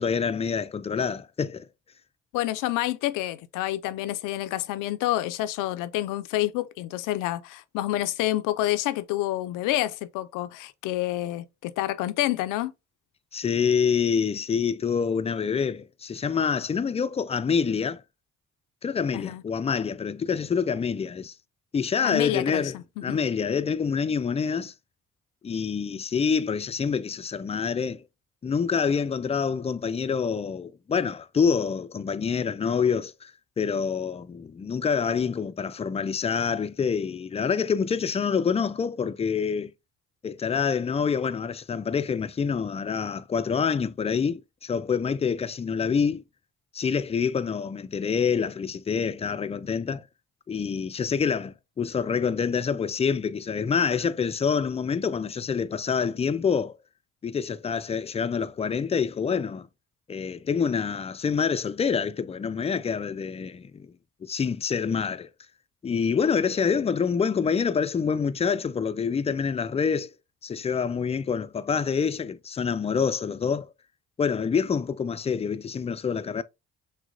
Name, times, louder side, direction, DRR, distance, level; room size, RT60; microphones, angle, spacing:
voice 1, 0.0-1.7 13.3-18.0 18.8-21.3 21.7-24.7 25.4-28.0 28.4-33.3 33.6-39.7 40.2-46.2 46.7-50.0 50.5-56.8 57.2-59.7 60.1-63.9 64.2-65.3 65.8-70.1 70.4-73.7 74.2-76.4, left 6 dB, 20° left, 0.3 m, -26 dB
voice 2, 2.3-12.7 19.1-19.4 22.0-23.2, left 15 dB, 80° left, 0.5 m, -28 dB
6.2 x 2.2 x 2.5 m
supercardioid pair, 60°, 31 cm